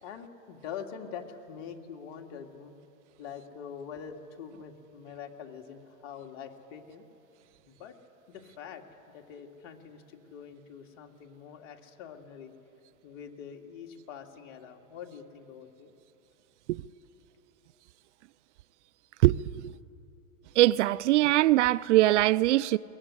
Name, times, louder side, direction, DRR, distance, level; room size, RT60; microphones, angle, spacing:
voice 1, 0.0-2.7 3.2-7.0 7.7-8.0 8.3-12.5 13.0-15.9, left 7 dB, 50° left, 2.3 m, -44 dB
voice 2, 20.6-22.8, right 16 dB, 55° right, 0.5 m, -22 dB
22.5 x 19.5 x 9.8 m
hypercardioid pair, 125°, 42 cm